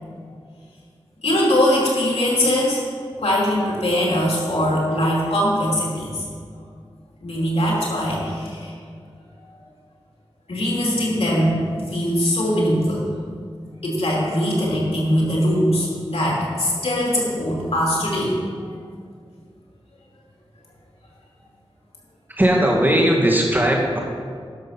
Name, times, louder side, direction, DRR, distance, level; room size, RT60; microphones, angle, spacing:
voice 1, 1.2-2.8 3.2-6.2 7.2-8.7 10.5-11.6 11.9-13.1 13.8-18.3, equal, 80° left, -4 dB, 2.9 m, -21 dB
voice 2, 22.3-24.0, equal, 20° right, -1 dB, 2.0 m, -18 dB
11.5 x 6.2 x 5.8 m, 2.1 s
wide cardioid pair, 50°, 10 cm